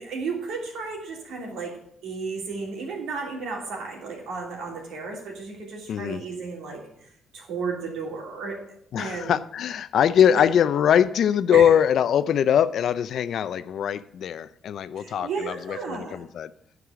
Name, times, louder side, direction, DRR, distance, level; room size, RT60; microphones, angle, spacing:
voice 1, 0.0-6.8 7.3-8.6 9.0-9.4 10.3-10.4 11.5-11.7 15.0-16.2, right 4 dB, 85° right, -1 dB, 2.9 m, -33 dB
voice 2, 5.9-6.2 8.9-16.5, left 9 dB, 65° left, 15 dB, 0.5 m, -22 dB
9.6 x 4.8 x 6.9 m, 0.70 s
cardioid pair, 90°, 0 cm